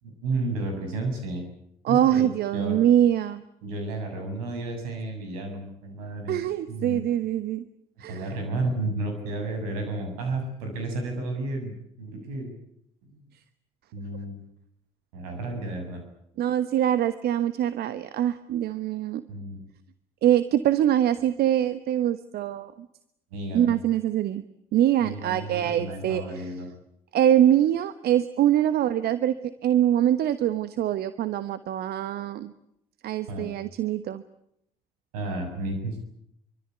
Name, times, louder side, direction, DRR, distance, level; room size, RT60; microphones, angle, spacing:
voice 1, 0.0-1.4 1.9-2.8 3.6-6.4 6.7-7.0 8.1-12.5 13.0-13.2 13.9-14.4 15.1-16.0 19.3-19.6 23.3-23.7 25.0-26.7 33.3-33.5 35.1-36.0, right 2 dB, 75° right, 5 dB, 7.1 m, -32 dB
voice 2, 1.8-3.4 6.3-7.6 8.0-8.4 16.4-19.2 20.2-22.9 23.5-24.4 24.7-26.5 27.1-29.4 29.6-32.5 33.0-34.2, right 11 dB, 55° right, 14 dB, 1.3 m, -24 dB
25.5 x 24.5 x 8.2 m, 0.77 s
figure-of-eight pair, 50°, 19 cm